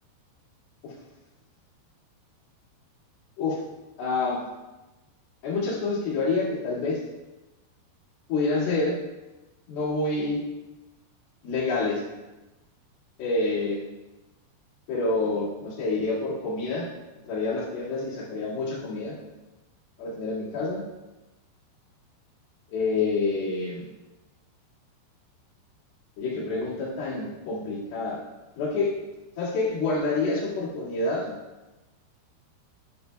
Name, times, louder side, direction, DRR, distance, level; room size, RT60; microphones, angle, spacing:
voice 1, 4.0-4.5 5.4-7.0 8.3-9.0 9.7-10.4 11.4-12.0 13.2-13.8 14.9-16.9 17.2-19.1 20.0-20.8 22.7-23.9 26.2-28.2 28.6-28.9 29.4-31.3, left 3 dB, 65° left, -6 dB, 3.7 m, -27 dB
9.7 x 9.0 x 2.2 m, 1.1 s
omnidirectional pair, 5.1 m